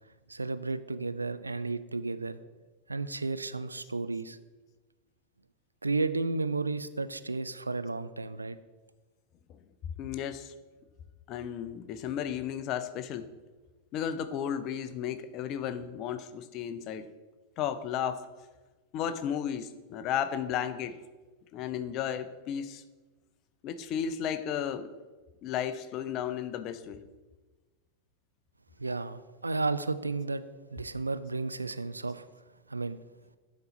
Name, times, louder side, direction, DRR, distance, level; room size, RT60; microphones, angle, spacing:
voice 1, 0.3-2.4 2.9-4.4 5.8-8.6 28.8-30.4 30.7-32.3 32.7-33.0, right 3 dB, 80° right, 13 dB, 0.3 m, -33 dB
voice 2, 10.0-10.5 11.3-13.3 13.9-17.1 17.6-18.3 18.9-21.0 21.5-22.8 23.6-24.9 25.4-27.0, left 9 dB, 40° left, 11 dB, 0.5 m, -34 dB
10.5 x 4.2 x 4.1 m, 1.3 s
figure-of-eight pair, 90°, 0 cm